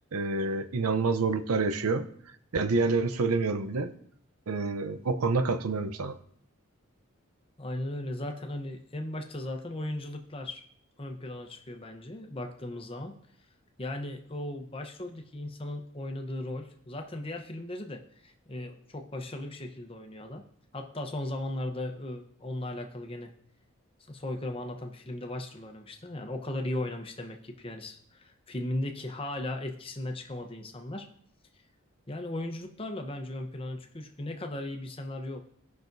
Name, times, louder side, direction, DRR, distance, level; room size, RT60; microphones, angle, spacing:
voice 1, 0.1-2.0 2.5-3.9 4.5-6.1, right 3 dB, 85° right, 11 dB, 0.7 m, -27 dB
voice 2, 7.6-10.6 11.0-13.1 13.8-20.4 20.7-23.3 24.1-31.1 32.1-35.4, left 1 dB, 25° left, 4 dB, 0.8 m, -37 dB
17.5 x 5.9 x 2.6 m, 0.65 s
head